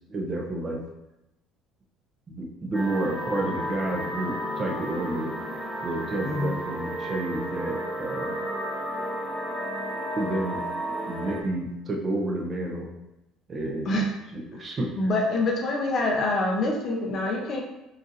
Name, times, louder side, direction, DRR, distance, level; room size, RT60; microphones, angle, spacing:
voice 1, 0.1-0.8 2.3-5.3 5.8-8.3 10.2-10.6 11.1-12.9 13.5-14.0 14.3-14.9, right 2 dB, 25° right, 0 dB, 0.6 m, -30 dB
sound 1, 2.7-11.4, equal, ahead, 1.0 m, -32 dB
voice 2, 6.2-6.5 13.8-14.1 14.5-14.6 15.0-17.6, left 2 dB, 40° left, 1 dB, 0.8 m, -26 dB
6.2 x 2.7 x 2.7 m, 0.93 s
cardioid pair, 150°, 0 cm